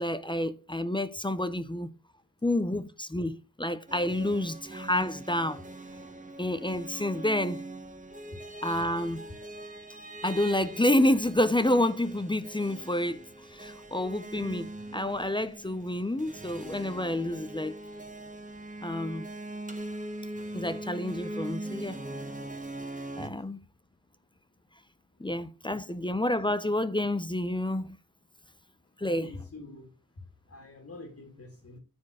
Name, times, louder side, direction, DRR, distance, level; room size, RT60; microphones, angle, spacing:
voice 1, 0.0-1.9 2.4-5.6 6.4-7.6 8.6-9.2 10.2-13.2 13.5-17.8 18.8-19.3 20.5-22.0 23.2-23.6 25.2-28.0 29.0-29.3, left 1 dB, 15° left, 0.5 m, -29 dB
sound 1, 3.9-23.3, right 1 dB, 20° right, 1.1 m, -41 dB
voice 2, 29.0-29.9 30.5-31.8, left 2 dB, 45° left, 1.8 m, -46 dB
9.7 x 4.4 x 4.7 m
wide cardioid pair, 115°, 37 cm